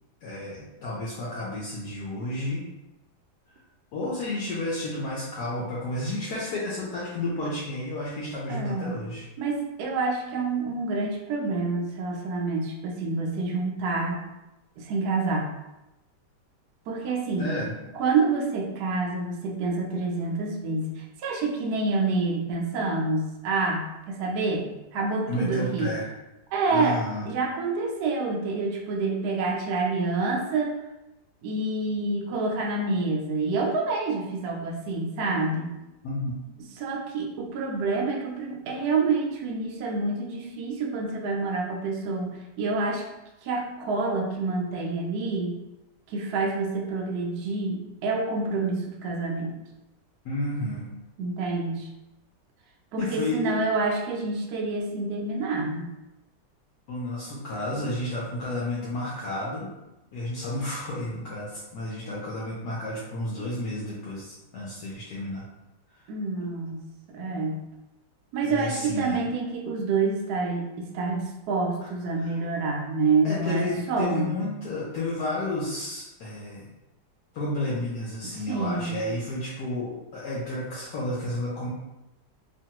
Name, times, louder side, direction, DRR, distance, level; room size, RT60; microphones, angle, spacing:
voice 1, 0.2-2.7 3.9-9.2 17.4-17.7 25.3-26.1 26.7-27.2 36.0-36.4 50.2-50.9 53.0-53.6 56.9-59.7 60.1-65.4 68.4-69.2 73.2-76.7 77.3-81.7, left 1 dB, 70° left, -6 dB, 1.1 m, -31 dB
voice 2, 8.5-9.0 9.4-14.2 14.8-15.5 16.9-17.5 17.9-25.9 26.5-27.0 27.3-30.8 31.4-35.7 36.6-43.0 43.4-45.6 46.1-49.5 51.2-51.9 52.9-55.9 66.1-66.8 67.1-67.6 68.3-74.4 78.5-78.9, right 3 dB, 70° right, 1 dB, 1.0 m, -27 dB
3.0 x 2.2 x 2.8 m, 0.97 s
omnidirectional pair, 1.9 m